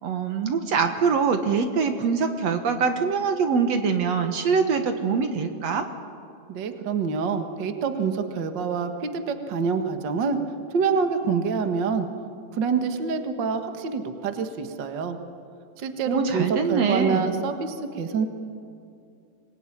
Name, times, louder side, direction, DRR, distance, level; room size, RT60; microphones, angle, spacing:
voice 1, 0.0-5.9 16.1-17.4, right 5 dB, 60° right, 7 dB, 2.4 m, -24 dB
voice 2, 6.5-10.4 10.7-12.1 12.5-15.2 15.8-18.3, right 5 dB, 45° right, 6 dB, 1.8 m, -26 dB
25.5 x 20.5 x 10.0 m, 2.5 s
omnidirectional pair, 3.5 m